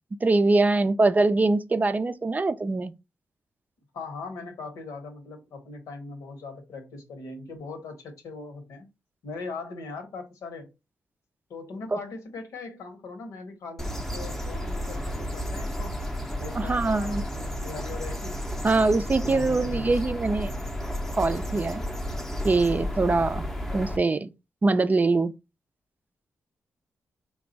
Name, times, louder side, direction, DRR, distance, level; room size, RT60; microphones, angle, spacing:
voice 1, 0.2-2.9 11.9-12.0 16.6-17.2 18.6-20.5 21.1-21.8 22.4-23.4 23.7-24.3 24.6-25.3, right 3 dB, 30° right, 0.4 m, -23 dB
voice 2, 3.9-8.9 9.2-10.7 11.5-16.0 16.4-18.4 19.2-19.9, left 3 dB, 85° left, 1.1 m, -40 dB
sound 1, 13.8-24.0, equal, 5° left, 0.7 m, -32 dB
3.4 x 2.3 x 3.9 m
cardioid pair, 65°, 5 cm